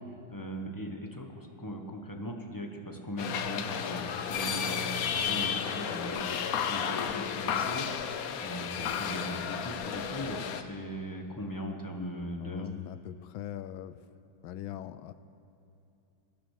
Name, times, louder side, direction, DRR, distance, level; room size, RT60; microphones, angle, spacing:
voice 1, 0.0-6.4 6.7-12.7, equal, 15° left, 2 dB, 1.0 m, -39 dB
sound 1, 3.2-10.6, left 8 dB, 60° left, 1.0 m, -33 dB
voice 2, 12.4-14.0 14.4-15.1, left 11 dB, 90° left, 14 dB, 1.4 m, -41 dB
21.0 x 10.0 x 6.5 m, 2.9 s
omnidirectional pair, 2.1 m